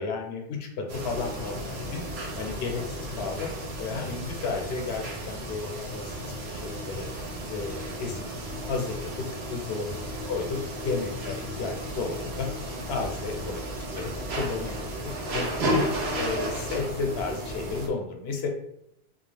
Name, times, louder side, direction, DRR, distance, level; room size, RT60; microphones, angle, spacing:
voice 1, 0.0-2.0 2.4-3.5 3.8-6.2 6.5-7.1 7.4-8.2 8.7-12.5 12.9-13.6 13.9-14.1 14.4-15.8 16.2-18.5, left 4 dB, 80° left, 3 dB, 0.8 m, -33 dB
sound 1, 0.9-17.9, equal, 85° right, 0.8 m, -33 dB
2.4 x 2.3 x 3.2 m, 0.77 s
omnidirectional pair, 1.0 m